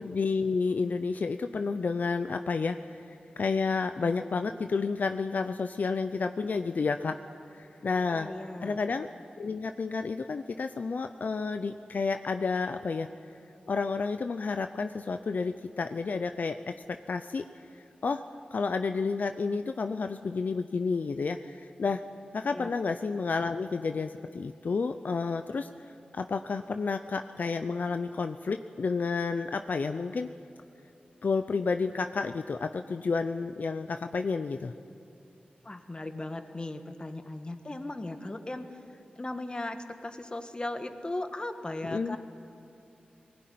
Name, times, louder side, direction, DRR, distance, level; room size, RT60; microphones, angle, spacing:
voice 1, 0.0-7.2 7.5-8.3 8.6-9.1 9.4-13.1 13.7-17.5 17.7-18.2 18.5-22.0 22.3-25.7 26.1-30.3 31.2-34.7 41.9-42.2, left 4 dB, 65° left, 8 dB, 0.6 m, -30 dB
voice 2, 8.0-8.8 22.5-22.7 35.6-42.2, left 2 dB, 30° left, 7 dB, 1.5 m, -37 dB
20.0 x 16.5 x 9.4 m, 2.6 s
wide cardioid pair, 65°, 3 cm